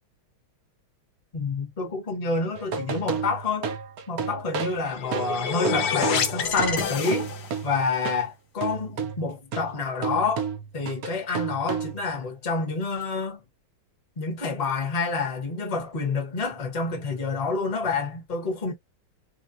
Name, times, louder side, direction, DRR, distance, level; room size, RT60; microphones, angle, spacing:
voice 1, 1.3-3.7 4.1-7.3 7.6-10.5 10.7-13.4 14.2-18.7, left 4 dB, 25° left, 0.8 m, -28 dB
sound 1, 2.5-8.3 8.6-12.2, right 6 dB, 85° right, 0.7 m, -32 dB
sound 2, 4.7-7.7, left 7 dB, 70° left, 1.0 m, -28 dB
3.2 x 2.5 x 2.6 m
omnidirectional pair, 2.3 m